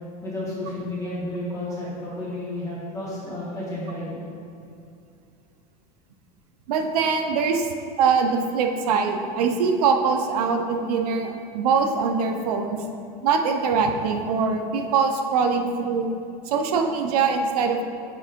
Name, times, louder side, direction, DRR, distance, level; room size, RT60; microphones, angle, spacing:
voice 1, 0.2-4.2, left 1 dB, 15° left, -8 dB, 1.6 m, -31 dB
voice 2, 6.7-7.7 8.0-12.8 13.2-16.1 16.5-17.8, right 5 dB, 75° right, 4 dB, 0.7 m, -23 dB
6.9 x 3.6 x 5.2 m, 2.4 s
supercardioid pair, 175°, 20 cm